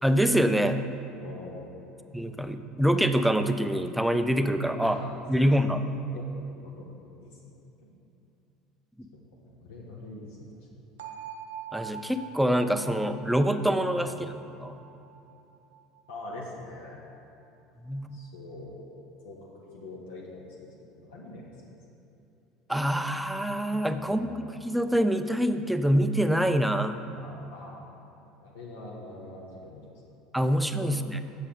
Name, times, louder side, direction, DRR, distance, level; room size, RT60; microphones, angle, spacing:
voice 1, 0.0-0.8 2.1-5.0 5.3-5.8 11.7-14.3 14.6-14.8 17.8-18.2 22.7-24.3 24.6-27.0 30.3-31.2, equal, ahead, 9 dB, 0.5 m, -25 dB
voice 2, 1.2-1.8 4.7-5.5 6.1-7.5 7.8-7.9 9.1-10.5 10.8-10.9 14.0-14.3 16.1-17.0 18.1-18.8 19.2-21.5 23.9-24.6 27.1-27.8 28.4-30.2 30.8-30.9, left 2 dB, 65° left, -3 dB, 1.1 m, -44 dB
sound 1, 11.0-16.8, right 7 dB, 65° right, 0.6 m, -45 dB
8.3 x 6.5 x 5.0 m, 2.7 s
figure-of-eight pair, 65°, 0 cm